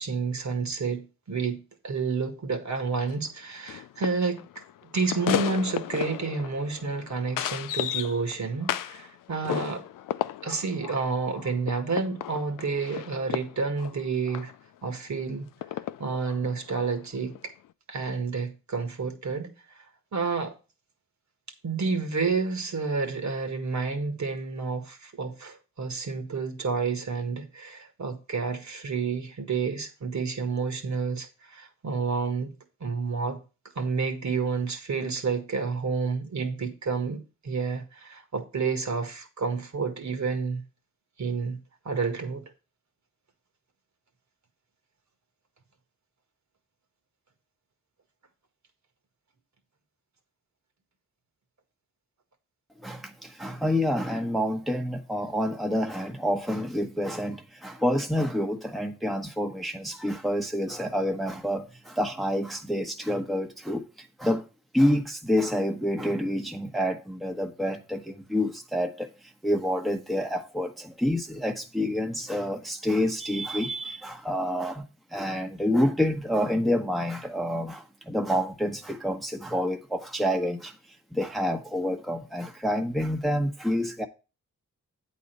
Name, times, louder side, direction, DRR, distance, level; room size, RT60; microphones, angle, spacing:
voice 1, 0.0-4.4 4.9-9.8 10.4-14.5 14.8-15.5 16.0-17.3 17.9-19.9 20.1-20.5 21.6-32.5 32.8-33.4 33.8-40.6 41.2-41.6 41.9-42.4, right 4 dB, 60° right, 1.8 m, -30 dB
sound 1, 2.8-2.9 3.1-3.3 3.7-9.1 9.5-14.6 15.6-16.9 17.3-17.4, left 12 dB, 80° left, 0.5 m, -34 dB
voice 2, 52.8-64.4 64.7-74.8 75.1-80.8 81.1-84.1, equal, ahead, 1.1 m, -28 dB
8.5 x 4.2 x 6.7 m
cardioid pair, 50°, 32 cm